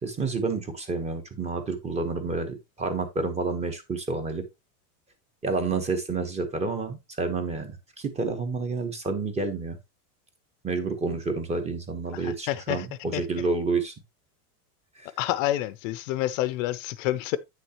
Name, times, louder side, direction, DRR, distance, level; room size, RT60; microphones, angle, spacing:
voice 1, 0.0-4.5 5.4-9.8 10.6-13.9 15.0-15.1, right 4 dB, 15° right, 1.1 m, -29 dB
voice 2, 12.2-12.9 13.1-13.2 15.2-17.4, left 14 dB, 60° left, 0.6 m, -28 dB
8.8 x 6.3 x 2.9 m
supercardioid pair, 165°, 45 cm